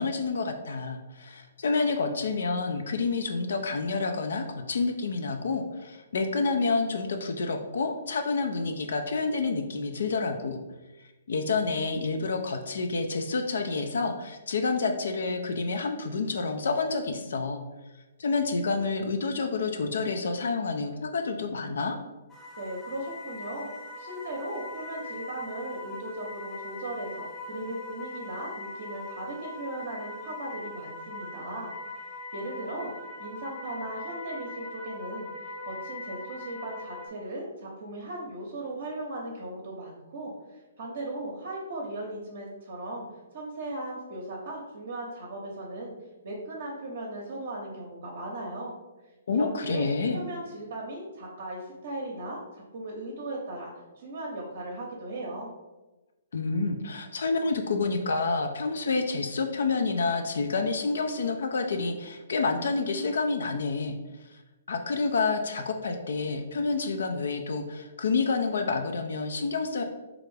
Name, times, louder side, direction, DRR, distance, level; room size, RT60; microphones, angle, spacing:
voice 1, 0.0-10.6 11.3-17.6 18.2-22.0 49.3-50.2 56.3-64.0 64.7-69.8, left 4 dB, 65° left, 5 dB, 0.3 m, -28 dB
sound 1, 22.3-37.1, left 2 dB, 5° right, 0.5 m, -41 dB
voice 2, 22.6-23.7 24.0-31.7 32.3-32.9 33.2-43.0 43.3-45.9 46.2-48.7 49.3-55.5, right 1 dB, 55° right, -2 dB, 0.7 m, -37 dB
3.3 x 2.4 x 3.2 m, 1.1 s
figure-of-eight pair, 125°, 0 cm